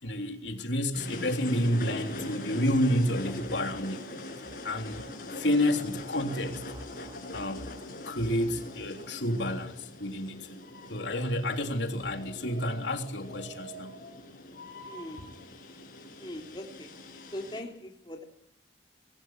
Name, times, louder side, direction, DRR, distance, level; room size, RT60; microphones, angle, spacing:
voice 1, 0.0-4.0 4.6-5.0 5.3-6.6 7.3-7.7 8.0-10.6 10.9-13.9, left 1 dB, 80° left, 3.5 m, -30 dB
sound 1, 0.9-17.6, left 1 dB, 50° left, 7.3 m, -42 dB
voice 2, 14.9-15.2 16.2-16.9 17.3-18.2, left 1 dB, 25° left, 3.4 m, -40 dB
25.0 x 17.0 x 9.6 m
head